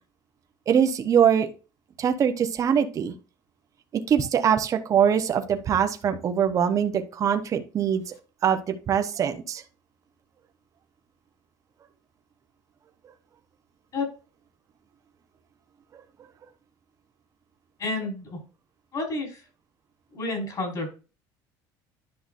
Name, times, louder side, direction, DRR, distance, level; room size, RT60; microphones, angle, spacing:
voice 1, 0.7-1.5 2.0-3.1 4.1-8.0 8.4-9.6, right 8 dB, 35° right, 6 dB, 0.9 m, -23 dB
voice 2, 17.8-18.4 18.9-19.4 20.1-20.9, left 2 dB, 45° left, 1 dB, 4.9 m, -30 dB
10.5 x 5.8 x 2.6 m, 0.32 s
cardioid pair, 135°, 9 cm